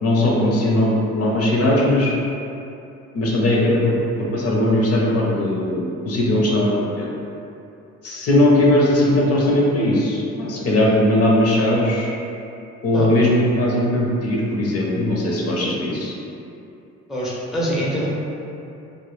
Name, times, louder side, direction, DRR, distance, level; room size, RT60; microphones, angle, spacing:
voice 1, 0.0-2.1 3.1-7.1 8.0-12.1 12.8-16.1, left 1 dB, 55° left, -3 dB, 0.5 m, -19 dB
voice 2, 17.1-18.1, equal, ahead, -6 dB, 0.4 m, -24 dB
2.0 x 2.0 x 3.0 m, 2.7 s
cardioid pair, 90°, 30 cm